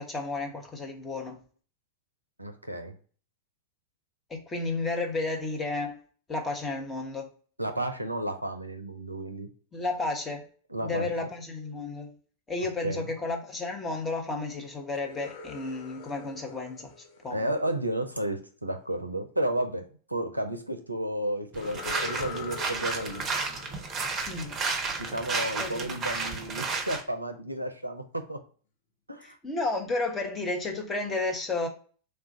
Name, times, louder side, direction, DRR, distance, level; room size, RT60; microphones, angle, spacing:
voice 1, 0.0-1.4 4.3-6.0 6.3-7.3 9.7-10.5 10.8-12.1 12.5-16.9 17.2-17.5 24.3-24.6 25.6-25.9 29.2-31.7, left 3 dB, 15° left, 0.9 m, -32 dB
voice 2, 2.4-2.9 7.6-9.5 10.7-11.1 12.8-13.1 17.3-23.2 25.0-28.4 29.1-29.4, right 1 dB, 85° right, 0.5 m, -32 dB
sound 1, 14.9-17.9 21.6-25.3, left 5 dB, 55° left, 0.7 m, -43 dB
sound 2, 21.5-27.0, right 4 dB, 25° right, 0.7 m, -32 dB
3.3 x 2.4 x 3.9 m
figure-of-eight pair, 90°, 0 cm